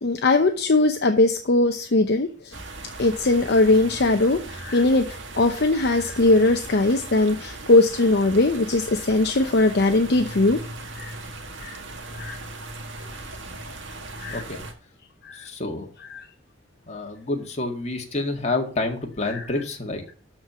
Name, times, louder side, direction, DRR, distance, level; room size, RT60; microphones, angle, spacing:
voice 1, 0.0-2.6 3.0-5.1 5.4-10.6 10.9-11.1 11.6-11.8 12.1-12.4 14.2-14.4 15.2-15.5 16.1-16.3 19.3-19.4, left 2 dB, 55° left, 6 dB, 0.8 m, -20 dB
sound 1, 2.5-14.7, right 2 dB, 70° right, 1.8 m, -38 dB
voice 2, 14.3-14.6 15.3-15.9 16.9-20.0, left 2 dB, 35° left, 3 dB, 2.0 m, -28 dB
12.5 x 4.6 x 6.8 m, 0.40 s
head